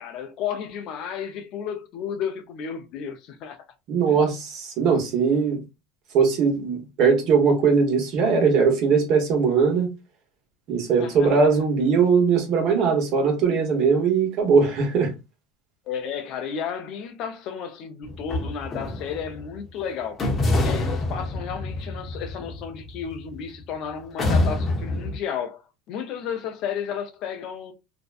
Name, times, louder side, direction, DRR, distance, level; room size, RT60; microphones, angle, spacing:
voice 1, 0.0-3.6 4.1-4.2 11.0-11.5 15.9-25.6 25.9-27.7, left 7 dB, 60° left, 0.5 m, -33 dB
voice 2, 3.9-5.6 6.1-9.9 10.7-15.1, right 5 dB, 60° right, 1.0 m, -20 dB
sound 1, 18.0-19.5 20.2-23.6 24.2-25.2, left 2 dB, 30° left, 0.8 m, -26 dB
2.5 x 2.2 x 2.4 m
supercardioid pair, 100°, 0 cm